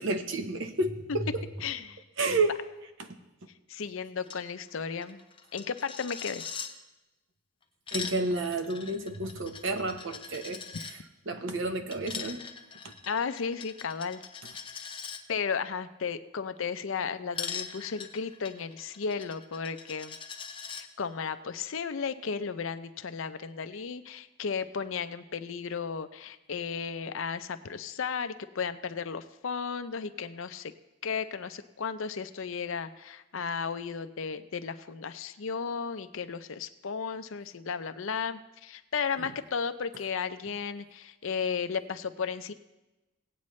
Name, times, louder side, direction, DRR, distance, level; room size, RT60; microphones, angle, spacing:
voice 1, 0.0-1.4 2.2-2.6 3.0-3.1 7.9-11.0 11.3-12.4 12.8-12.9 39.2-39.3, right 2 dB, 60° right, 6 dB, 0.9 m, -31 dB
voice 2, 1.6-2.4 3.7-5.2 5.5-6.4 13.1-14.2 14.5-14.6 15.3-20.2 20.7-30.7 31.0-42.5, left 6 dB, 65° left, 11 dB, 0.5 m, -34 dB
Coin (dropping), 4.2-4.4 4.7-4.8 5.0-6.7 7.6-10.9 11.9-15.2 17.3-20.8, left 6 dB, 25° left, 0.7 m, -41 dB
17.5 x 8.5 x 3.2 m, 1.0 s
head